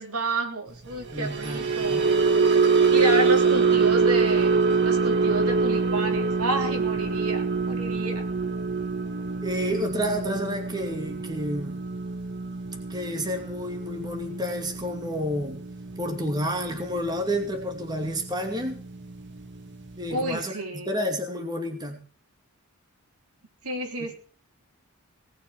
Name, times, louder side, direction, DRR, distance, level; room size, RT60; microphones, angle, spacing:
voice 1, 0.0-2.1 2.9-8.3 20.1-20.9 23.6-24.1, right 2 dB, 85° right, 3 dB, 3.8 m, -30 dB
voice 2, 1.1-2.1 9.4-11.8 12.9-15.6 16.0-18.8 20.0-22.0, equal, 20° right, 4 dB, 2.6 m, -30 dB
sound 1, 1.1-17.4 17.8-18.1 18.4-18.7, right 4 dB, 50° right, 1.7 m, -25 dB
19.0 x 6.8 x 8.1 m, 0.42 s
head